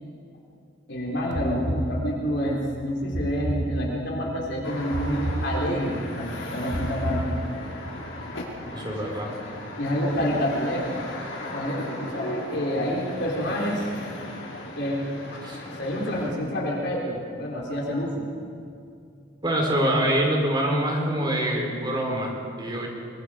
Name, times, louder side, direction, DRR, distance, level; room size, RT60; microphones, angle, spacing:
voice 1, 0.9-7.4 9.8-11.1 11.5-13.9 14.8-15.4 15.8-18.3, equal, 60° left, -3 dB, 3.9 m, -28 dB
sound 1, 1.3-2.5 3.1-4.3 4.9-6.1 6.7-7.9, right 1 dB, 45° right, 1.7 m, -31 dB
sound 2, 4.6-16.3, left 1 dB, 80° left, 5.0 m, -37 dB
voice 2, 8.7-9.6 10.1-10.3 15.4-15.6 19.4-22.9, right 1 dB, 25° right, 0 dB, 4.5 m, -25 dB
24.0 x 24.0 x 5.1 m, 2.4 s
head